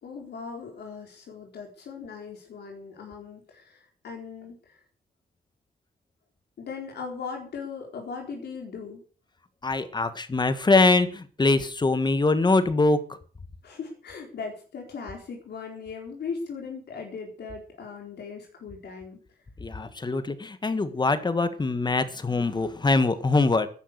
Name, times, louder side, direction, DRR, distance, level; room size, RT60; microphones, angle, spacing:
voice 1, 0.0-4.8 6.6-9.0 13.6-19.4, left 5 dB, 75° left, 1 dB, 4.2 m, -38 dB
voice 2, 9.6-13.1 19.6-23.7, left 3 dB, 25° left, 11 dB, 1.7 m, -23 dB
13.5 x 10.5 x 6.7 m, 0.41 s
wide cardioid pair, 120°, 17 cm